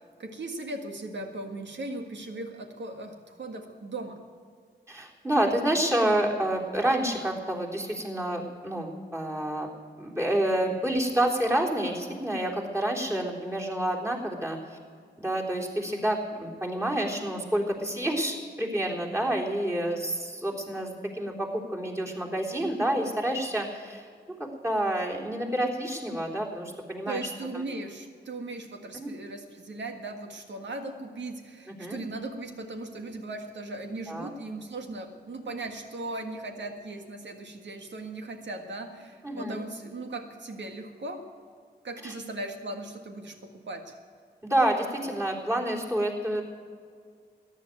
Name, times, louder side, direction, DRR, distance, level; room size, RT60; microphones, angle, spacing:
voice 1, 0.2-4.2 27.1-41.2 41.8-43.9, right 2 dB, 90° right, 4 dB, 1.7 m, -38 dB
voice 2, 4.9-9.7 10.0-14.8 15.2-24.1 24.4-27.3 28.9-29.1 31.7-32.0 34.1-34.3 39.2-39.6 42.0-42.1 44.4-46.4, right 1 dB, 15° right, 1 dB, 3.7 m, -28 dB
14.5 x 10.5 x 9.3 m, 2.1 s
cardioid pair, 50°, 18 cm